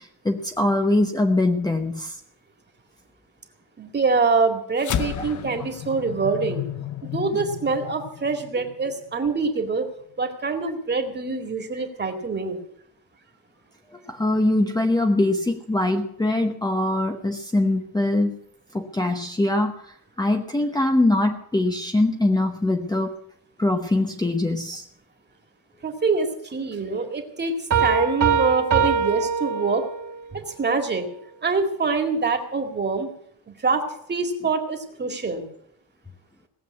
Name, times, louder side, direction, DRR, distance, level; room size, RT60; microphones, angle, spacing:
voice 1, 0.0-2.2 14.1-18.4 18.7-23.1 23.6-24.8, left 2 dB, 10° left, 4 dB, 0.9 m, -22 dB
voice 2, 3.8-6.6 7.0-9.9 10.2-12.6 25.8-29.9 30.3-31.1 31.4-33.1 33.5-35.5, right 4 dB, 30° right, 5 dB, 2.1 m, -25 dB
sound 1, 4.8-9.4, left 11 dB, 55° left, 0.8 m, -32 dB
sound 2, 27.7-30.2, right 6 dB, 55° right, 2.9 m, -22 dB
18.0 x 7.6 x 9.4 m, 0.69 s
wide cardioid pair, 175°, 36 cm